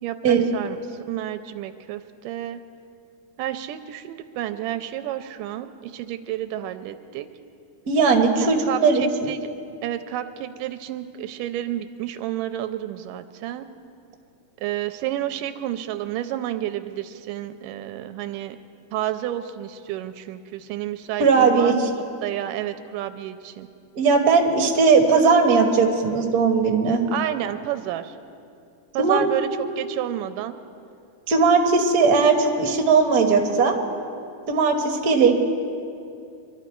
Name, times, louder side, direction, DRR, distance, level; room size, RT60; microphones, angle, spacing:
voice 1, 0.0-2.6 3.4-7.3 8.6-9.5 9.8-13.7 14.6-18.6 18.9-23.7 27.1-28.2 28.9-29.5 29.8-30.6, right 12 dB, 85° right, 10 dB, 2.2 m, -30 dB
voice 2, 7.9-9.3 21.2-21.9 24.0-27.0 29.0-29.2 31.3-33.7 34.5-35.3, right 4 dB, 50° right, 2 dB, 1.2 m, -18 dB
24.5 x 13.0 x 4.5 m, 2.5 s
omnidirectional pair, 3.8 m